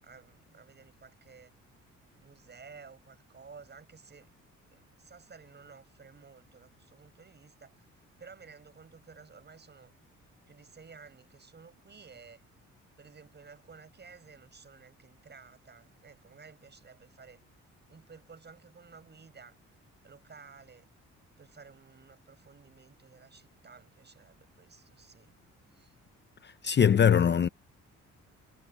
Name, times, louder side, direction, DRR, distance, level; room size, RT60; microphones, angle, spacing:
voice 1, 0.0-1.5 2.2-4.3 4.7-9.9 10.5-12.4 13.0-17.4 17.9-19.6 20.0-20.9 21.4-25.3 25.7-25.9, right 5 dB, 35° right, 6.9 m, -54 dB
voice 2, 26.4-27.5, left 8 dB, 35° left, 0.7 m, -22 dB
cardioid pair, 90°, 30 cm